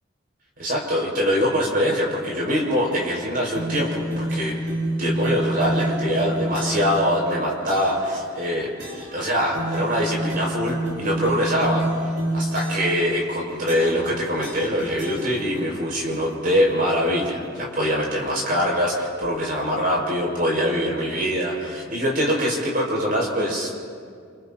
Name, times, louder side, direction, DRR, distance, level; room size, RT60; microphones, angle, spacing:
voice 1, 0.6-4.5 5.0-23.8, equal, 45° right, -3 dB, 6.5 m, -23 dB
sound 1, 3.5-7.0 7.7-8.1 8.8-9.2 9.5-13.0 13.7-14.1 14.4-15.8, right 1 dB, 70° right, 6.0 m, -28 dB
29.5 x 29.5 x 3.1 m, 2.2 s
head